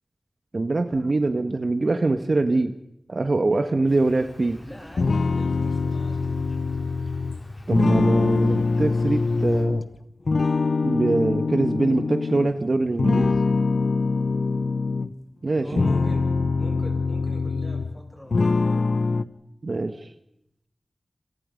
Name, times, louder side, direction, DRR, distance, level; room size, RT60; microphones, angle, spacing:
voice 1, 0.5-2.7 3.1-4.6 7.7-9.8 10.8-13.3 15.4-15.8 19.6-20.1, right 2 dB, 50° right, 9 dB, 1.4 m, -23 dB
Insect, 3.9-9.7, left 1 dB, 35° left, 4.4 m, -44 dB
voice 2, 4.6-6.3 15.6-19.1, equal, 10° left, 1 dB, 7.6 m, -42 dB
sound 1, 5.0-9.9 10.3-12.5 13.0-15.1 15.6-18.0 18.3-19.2, left 4 dB, 75° left, 1.1 m, -23 dB
28.0 x 27.5 x 5.3 m, 0.79 s
wide cardioid pair, 85°, 0 cm